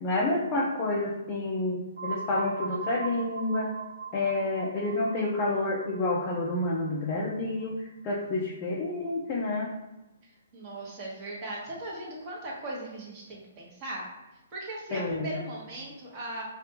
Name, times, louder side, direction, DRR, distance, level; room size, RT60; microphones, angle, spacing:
voice 1, 0.0-3.7 4.1-9.7 14.9-15.3, left 2 dB, 25° left, -3 dB, 0.5 m, -29 dB
sound 1, 2.0-7.6, right 5 dB, 85° right, 0.3 m, -40 dB
voice 2, 10.2-14.0 14.5-16.5, right 1 dB, 25° right, -4 dB, 1.2 m, -38 dB
5.0 x 2.3 x 2.9 m, 0.98 s
hypercardioid pair, 165°, 0 cm